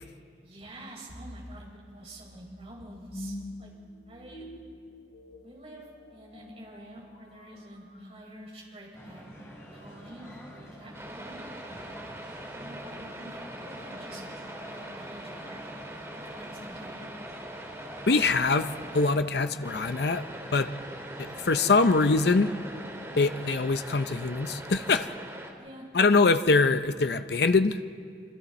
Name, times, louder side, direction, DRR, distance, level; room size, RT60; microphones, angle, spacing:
voice 1, 0.4-3.7 4.1-4.5 5.4-11.5 12.2-14.2 14.5-17.1 25.5-25.9, right 1 dB, 35° right, -3 dB, 5.4 m, -48 dB
sound 1, 1.1-10.2, left 1 dB, 50° left, 1.7 m, -47 dB
sound 2, 8.9-25.2, equal, 15° left, 4.0 m, -47 dB
sound 3, 10.9-19.1 19.6-25.5, right 1 dB, 15° right, 2.1 m, -42 dB
voice 2, 18.1-20.2 20.5-20.7 21.4-22.5 23.2-25.1 25.9-27.8, left 3 dB, 65° left, 10 dB, 0.6 m, -23 dB
27.0 x 26.5 x 4.2 m, 2.3 s
head